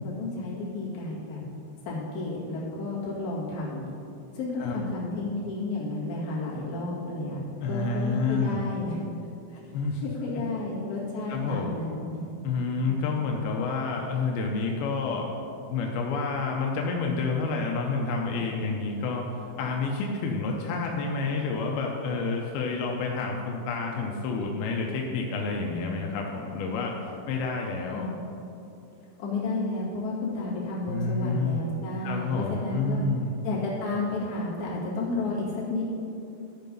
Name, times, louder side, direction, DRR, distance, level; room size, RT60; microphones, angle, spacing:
voice 1, 0.0-1.4 1.8-3.9 4.3-7.4 7.7-9.0 9.5-9.6 10.0-12.3 12.8-13.1 27.9-28.1 29.2-33.0 33.4-35.8, left 2 dB, 55° left, -7 dB, 3.2 m, -32 dB
voice 2, 7.6-8.6 9.7-10.1 11.3-11.7 12.4-15.3 15.7-19.3 19.6-27.0 27.3-28.1 30.9-31.6 32.0-33.3, left 4 dB, 85° left, 0 dB, 2.6 m, -29 dB
12.5 x 4.6 x 5.3 m, 2.7 s
omnidirectional pair, 4.3 m